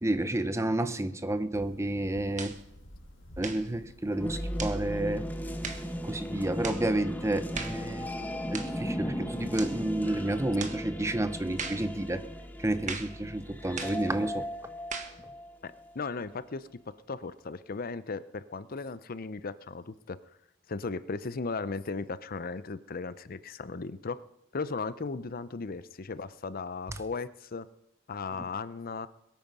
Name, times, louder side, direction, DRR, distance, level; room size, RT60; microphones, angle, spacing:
voice 1, 0.0-2.5 3.4-5.3 6.0-8.1 8.5-12.2 12.6-14.5, right 1 dB, 15° right, 12 dB, 0.8 m, -30 dB
sound 1, 1.5-6.7, equal, 75° left, 2.1 m, -54 dB
sound 2, 2.4-2.6 3.4-3.7 4.6-4.8 5.6-5.9 6.6-6.9 7.5-7.8 8.5-8.8 9.6-9.8 10.6-10.8 11.6-11.9 12.9-13.2 13.8-14.0 14.9-15.2, right 5 dB, 40° right, 1.5 m, -38 dB
sound 3, 4.1-16.0, equal, 10° left, 1.1 m, -37 dB
voice 2, 15.6-16.7 17.1-20.2 20.7-24.2 24.5-27.7 28.1-29.1, left 4 dB, 45° left, 15 dB, 0.6 m, -36 dB
22.0 x 9.2 x 5.5 m, 0.82 s
head